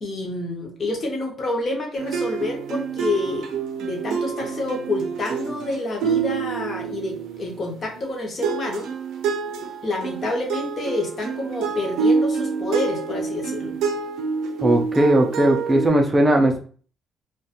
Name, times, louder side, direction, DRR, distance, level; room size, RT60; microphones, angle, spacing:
voice 1, 0.0-3.5 3.8-8.9 9.8-13.8, left 2 dB, 30° left, 1 dB, 0.6 m, -28 dB
sound 1, 2.0-8.1 8.4-15.9, right 5 dB, 90° right, 0.4 m, -27 dB
voice 2, 14.6-16.6, right 1 dB, 15° right, 2 dB, 0.4 m, -18 dB
2.3 x 2.2 x 2.8 m, 0.43 s
cardioid pair, 170°, 0 cm